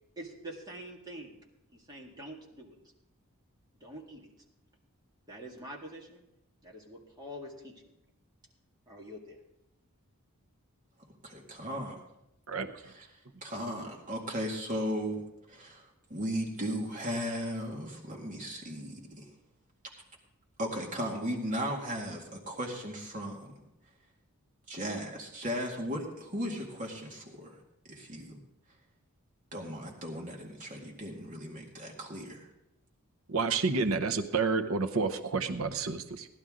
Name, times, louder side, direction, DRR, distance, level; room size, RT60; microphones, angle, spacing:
voice 1, 0.2-1.3 1.7-2.8 3.8-4.3 5.3-6.2 6.6-7.7 8.9-9.4, equal, 20° right, -2 dB, 2.1 m, -45 dB
voice 2, 11.2-12.0 12.8-13.0 13.4-19.2 20.6-23.5 24.7-27.6 27.9-28.4 29.5-32.5, equal, 35° right, 0 dB, 2.1 m, -36 dB
voice 3, 33.3-36.3, right 4 dB, 65° right, 8 dB, 0.8 m, -29 dB
17.5 x 11.5 x 3.8 m, 0.86 s
head